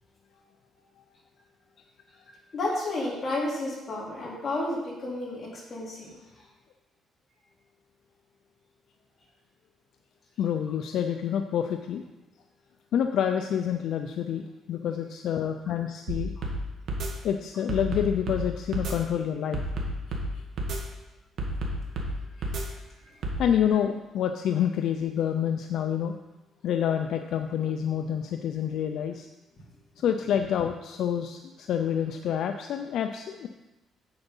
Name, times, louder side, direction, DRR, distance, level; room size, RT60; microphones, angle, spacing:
voice 1, 2.5-6.2 16.4-16.5, left 2 dB, 35° left, -5 dB, 3.6 m, -31 dB
voice 2, 10.4-12.0 12.9-16.3 17.2-19.6 22.4-22.5 23.4-26.1 26.6-29.3 30.0-33.5, left 9 dB, 65° left, 6 dB, 0.5 m, -28 dB
sound 1, 16.1-16.6 16.9-17.1 17.7-18.4 18.7-18.9 19.5-20.3 20.6-20.8 21.4-22.1 22.4-22.6 23.2-23.4, right 1 dB, 55° right, 1.8 m, -30 dB
8.1 x 7.7 x 5.5 m, 1.0 s
cardioid pair, 140°, 0 cm